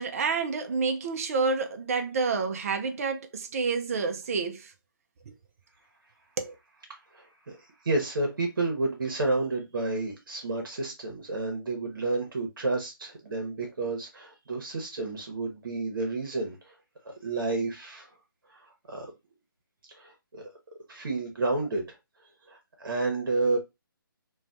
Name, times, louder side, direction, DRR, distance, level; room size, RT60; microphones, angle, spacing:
voice 1, 0.0-4.7 6.4-6.5, right 4 dB, 40° right, 0.4 m, -29 dB
voice 2, 6.9-7.6 7.8-16.7 17.0-18.1 18.5-19.1 19.9-20.4 20.9-22.0 22.5-23.6, right 2 dB, 70° right, 0.9 m, -31 dB
3.1 x 2.2 x 2.5 m
figure-of-eight pair, 150°, 12 cm